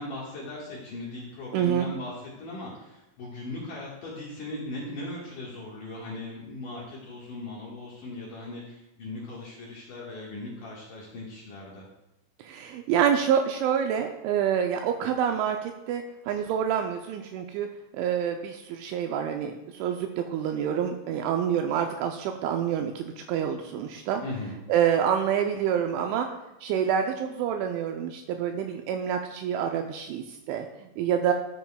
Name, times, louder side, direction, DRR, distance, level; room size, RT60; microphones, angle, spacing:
voice 1, 0.0-11.9 24.2-24.6, left 2 dB, 65° left, -5 dB, 2.1 m, -38 dB
voice 2, 1.5-1.9 12.4-17.7 17.9-24.2 24.7-26.3 26.6-31.3, right 8 dB, 85° right, 5 dB, 2.7 m, -27 dB
13.0 x 9.1 x 2.2 m, 0.92 s
omnidirectional pair, 5.8 m